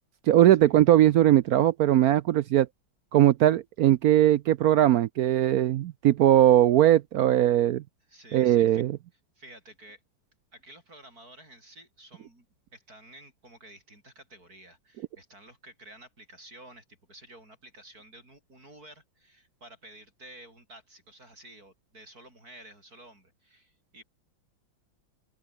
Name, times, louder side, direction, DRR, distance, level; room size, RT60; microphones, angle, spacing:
voice 1, 0.3-2.7 3.1-7.8 8.3-8.9, right 12 dB, 75° right, 0.8 m, -20 dB
voice 2, 8.1-8.8 9.3-10.0 10.5-12.5 12.7-24.0, right 1 dB, 50° right, 8.3 m, -51 dB
open air
omnidirectional pair, 2.1 m